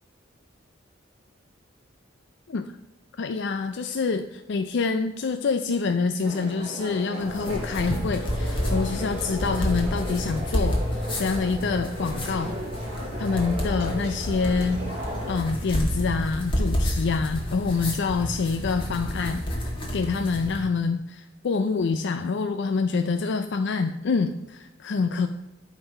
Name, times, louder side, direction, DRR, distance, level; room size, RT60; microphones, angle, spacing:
voice 1, 3.2-12.6 13.2-14.9 15.3-25.3, left 4 dB, 65° left, 8 dB, 0.4 m, -26 dB
sound 1, 6.2-15.3, equal, 30° right, 2.4 m, -36 dB
sound 2, 7.2-20.6, equal, 30° left, 1.9 m, -29 dB
12.0 x 4.0 x 5.3 m, 0.93 s
head